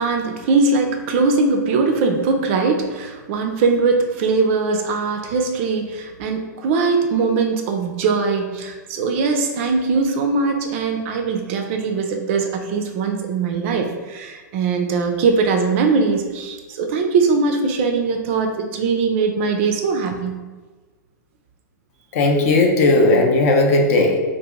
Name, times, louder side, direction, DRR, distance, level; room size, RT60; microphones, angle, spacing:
voice 1, 0.0-20.4, right 4 dB, 40° right, 4 dB, 0.4 m, -21 dB
voice 2, 22.1-24.2, left 2 dB, 50° left, 2 dB, 0.5 m, -16 dB
2.7 x 2.5 x 3.5 m, 1.3 s
figure-of-eight pair, 105°, 10 cm